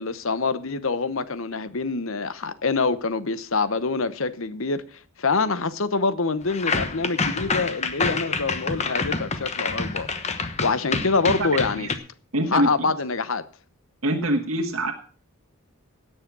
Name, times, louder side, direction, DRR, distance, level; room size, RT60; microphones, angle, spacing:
voice 1, 0.0-10.1 10.6-11.9 12.5-13.4, left 4 dB, 65° left, 0.9 m, -25 dB
sound 1, 6.5-12.0, left 4 dB, 30° left, 1.1 m, -27 dB
voice 2, 12.3-12.9 14.0-14.9, right 1 dB, 75° right, 1.4 m, -24 dB
17.5 x 6.5 x 6.0 m
head